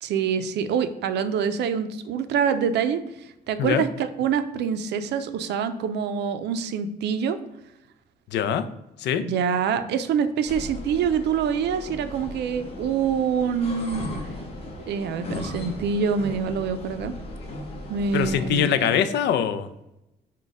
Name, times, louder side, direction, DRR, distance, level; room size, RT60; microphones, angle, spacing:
voice 1, 0.0-7.4 9.2-14.0 14.9-17.1 17.9-18.7, right 7 dB, 80° right, 10 dB, 0.4 m, -25 dB
voice 2, 8.3-8.6 9.0-9.2 18.1-19.7, left 9 dB, 85° left, 11 dB, 0.4 m, -23 dB
sound 1, 10.5-18.5, left 1 dB, 35° left, 0.7 m, -36 dB
4.8 x 2.2 x 3.9 m, 0.90 s
cardioid pair, 160°, 17 cm